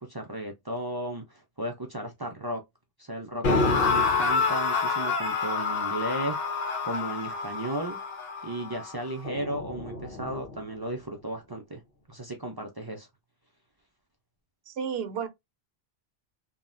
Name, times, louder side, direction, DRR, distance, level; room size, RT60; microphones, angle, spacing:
voice 1, 0.0-2.6 3.0-6.4 6.8-8.0 8.4-11.8 12.1-13.1, right 1 dB, 35° right, 0.4 m, -35 dB
sound 1, 3.4-10.6, left 4 dB, 75° left, 1.2 m, -28 dB
voice 2, 14.7-15.3, right 7 dB, 75° right, 0.8 m, -32 dB
3.1 x 2.1 x 2.4 m
omnidirectional pair, 1.0 m